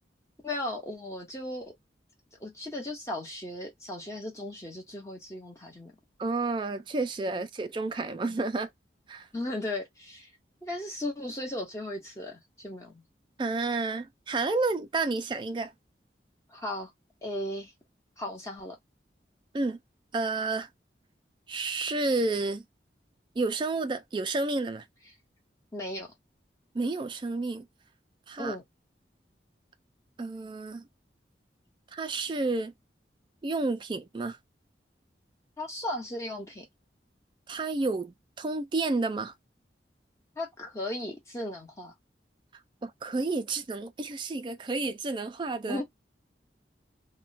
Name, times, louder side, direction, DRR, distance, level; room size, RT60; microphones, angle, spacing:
voice 1, 0.4-1.7 2.4-5.9 7.3-7.5 8.2-8.4 9.3-10.3 10.6-13.0 16.5-16.9 17.2-17.7 18.2-18.8 25.7-26.1 28.4-28.6 35.6-36.6 40.4-41.9 45.7-45.8, left 1 dB, 15° left, 1.0 m, -36 dB
voice 2, 6.2-8.7 9.1-9.3 13.4-15.7 19.5-19.8 20.1-20.7 21.5-22.6 23.4-24.8 26.7-27.7 28.3-28.6 30.2-30.8 31.9-32.7 33.4-34.4 37.5-39.3 42.8-45.8, right 3 dB, 25° right, 0.3 m, -30 dB
2.3 x 2.2 x 3.9 m
head